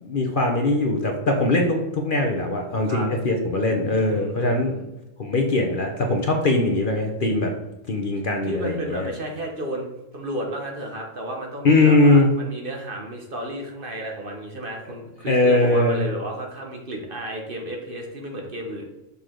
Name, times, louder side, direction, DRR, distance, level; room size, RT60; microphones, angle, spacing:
voice 1, 0.0-4.8 5.2-7.5 7.9-9.1 11.6-12.3 15.3-16.0, left 2 dB, 45° left, 2 dB, 0.9 m, -21 dB
voice 2, 4.1-4.9 6.3-6.4 8.4-18.9, right 1 dB, 45° right, 1 dB, 1.2 m, -32 dB
6.8 x 4.7 x 3.8 m, 0.96 s
omnidirectional pair, 1.4 m